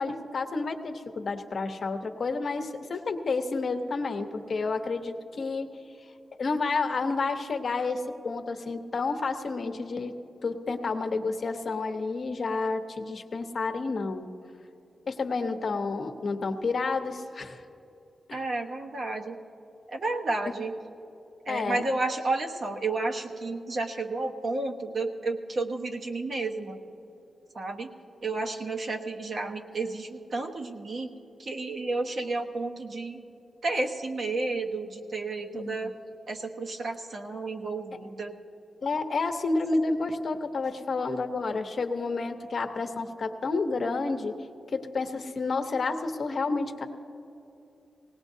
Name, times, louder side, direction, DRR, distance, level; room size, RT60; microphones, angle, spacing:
voice 1, 0.0-5.7 6.4-10.1 10.4-14.3 15.1-17.6 18.3-18.4 21.5-21.9 35.5-35.8 38.8-44.3 44.7-46.9, left 3 dB, 55° left, 5 dB, 0.9 m, -30 dB
voice 2, 18.3-19.4 19.9-20.7 21.5-26.8 27.5-27.9 28.2-31.1 31.4-33.2 33.6-35.9 36.3-38.3, right 3 dB, 55° right, 2 dB, 1.1 m, -31 dB
20.0 x 18.0 x 2.7 m, 2.8 s
wide cardioid pair, 120°, 0 cm